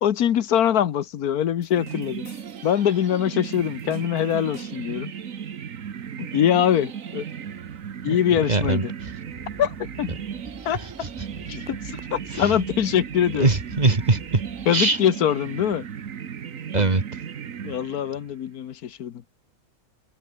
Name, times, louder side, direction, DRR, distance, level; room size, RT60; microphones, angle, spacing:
voice 1, 0.0-2.3 2.6-5.1 6.2-7.2 8.0-8.9 9.6-10.1 10.6-10.8 11.5-13.5 14.7-15.9 17.6-19.2, left 10 dB, 80° left, 1.5 m, -23 dB
sound 1, 1.6-2.8 3.4-5.0, left 3 dB, 65° left, 3.5 m, -50 dB
sound 2, 1.7-18.3, right 8 dB, 65° right, 1.5 m, -36 dB
voice 2, 8.5-8.9 10.7-11.1 12.3-12.5 13.4-14.4 14.7-15.0 16.7-17.0, right 3 dB, 30° right, 1.9 m, -22 dB
sound 3, 9.1-14.7, equal, 5° right, 6.8 m, -46 dB
omnidirectional pair, 1.6 m